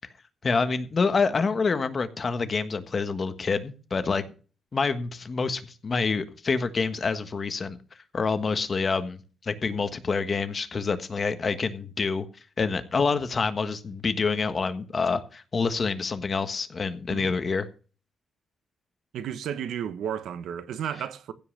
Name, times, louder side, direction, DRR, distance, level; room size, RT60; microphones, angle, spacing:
voice 1, 0.4-4.2 4.7-7.8 8.1-12.3 12.6-17.7, left 4 dB, 35° left, 1.4 m, -27 dB
voice 2, 19.1-21.3, right 9 dB, 85° right, 1.2 m, -33 dB
15.5 x 5.6 x 6.5 m
wide cardioid pair, 145°, 0 cm